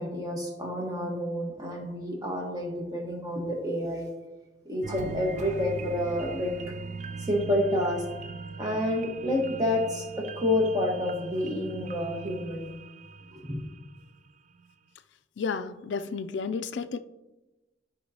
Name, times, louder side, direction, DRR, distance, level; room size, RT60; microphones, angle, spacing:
voice 1, 0.0-4.1 4.6-6.5 7.2-8.0 8.6-12.7 13.5-13.6, left 1 dB, 20° right, 1.3 m, -29 dB
sound 1, 4.8-14.2 14.6-14.7, right 4 dB, 40° right, 0.4 m, -40 dB
voice 2, 15.4-17.0, left 5 dB, 80° left, 0.4 m, -32 dB
12.5 x 5.3 x 2.8 m
head